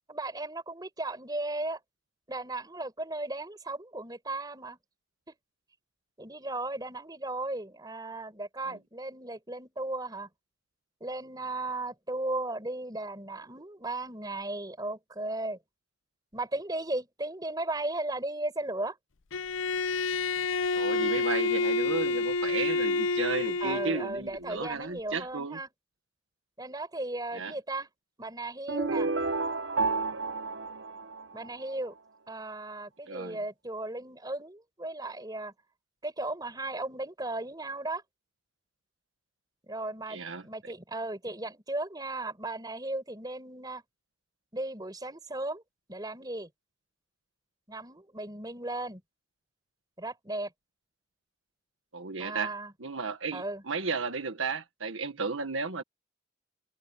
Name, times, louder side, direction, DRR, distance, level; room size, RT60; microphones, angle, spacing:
voice 1, 0.1-1.8 2.3-4.8 6.2-10.3 11.0-15.6 16.3-19.0 23.6-25.7 26.6-27.9 28.2-29.1 31.3-31.9 32.3-35.5 36.0-38.0 39.6-43.8 44.5-45.6 45.9-46.5 47.7-49.0 50.0-50.5 52.2-52.7 53.3-53.6, right 2 dB, 20° right, 4.7 m, -36 dB
Bowed string instrument, 19.3-24.1, left 3 dB, 80° left, 0.7 m, -28 dB
voice 2, 20.7-25.6 27.3-27.5 33.1-33.4 40.1-40.7 51.9-55.8, right 4 dB, 90° right, 1.6 m, -34 dB
sound 1, 28.7-31.7, right 3 dB, 65° right, 0.8 m, -31 dB
head